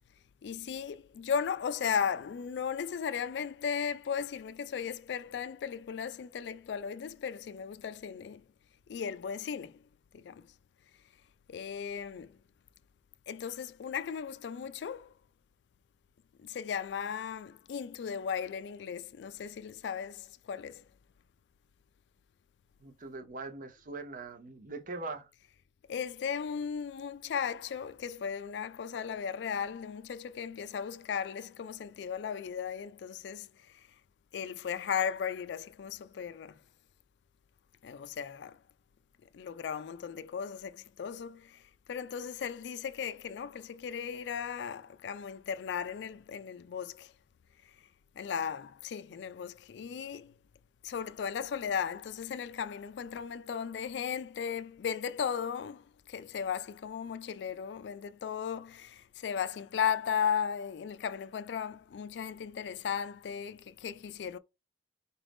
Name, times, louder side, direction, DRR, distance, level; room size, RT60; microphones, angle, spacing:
voice 1, 0.4-8.4 8.9-9.7 10.1-10.5 11.5-12.4 13.3-15.1 16.4-20.8 25.9-33.5 34.3-36.6 37.8-38.6 39.3-41.6 41.9-47.1 48.2-50.3 50.8-64.4, left 7 dB, 70° left, 0.3 m, -36 dB
voice 2, 22.8-25.3, right 3 dB, 50° right, 0.6 m, -41 dB
4.0 x 2.5 x 3.4 m
head